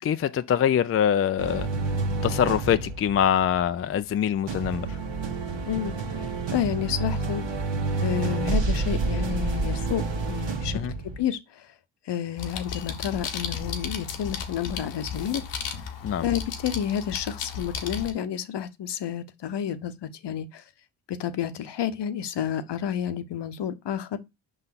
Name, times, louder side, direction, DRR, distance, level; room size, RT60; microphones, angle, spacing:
voice 1, 0.0-1.7 2.2-5.0 10.7-10.9 16.0-16.2, left 9 dB, 30° left, 0.4 m, -24 dB
sound 1, 1.4-4.1 4.5-11.2, right 3 dB, 60° right, 1.5 m, -29 dB
voice 2, 5.7-7.4 8.0-10.8 11.2-11.7 12.1-15.4 16.2-20.6 21.1-24.2, left 9 dB, 55° left, 0.9 m, -30 dB
sound 2, 12.4-18.1, left 6 dB, 80° left, 1.1 m, -34 dB
5.3 x 4.0 x 5.8 m
hypercardioid pair, 40°, 50 cm